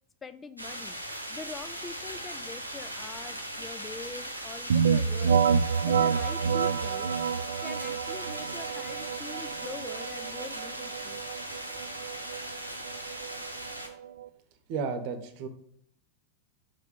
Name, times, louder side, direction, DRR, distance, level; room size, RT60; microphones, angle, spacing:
voice 1, 0.2-1.0 1.3-5.4 5.8-7.1 7.6-11.2, left 4 dB, 15° left, 11 dB, 0.4 m, -44 dB
sound 1, 0.6-13.9, right 1 dB, 85° right, 1.0 m, -39 dB
sound 2, 4.7-14.3, right 7 dB, 65° right, 0.4 m, -28 dB
voice 2, 14.7-15.5, right 5 dB, 45° right, 10 dB, 1.0 m, -32 dB
5.6 x 4.8 x 5.3 m, 0.70 s
figure-of-eight pair, 90°, 0 cm